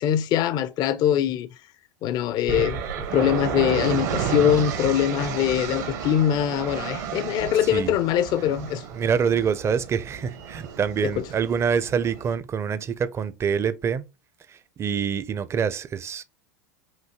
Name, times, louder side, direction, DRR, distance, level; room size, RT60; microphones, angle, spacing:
voice 1, 0.0-1.5 2.0-2.8 3.1-8.8, left 10 dB, 45° left, 0.4 m, -22 dB
sound 1, 2.5-12.3, right 7 dB, 65° right, 1.1 m, -32 dB
voice 2, 7.6-8.0 8.9-14.0 14.5-16.2, right 7 dB, 25° right, 0.5 m, -26 dB
5.8 x 2.6 x 2.9 m
hypercardioid pair, 85°, 10 cm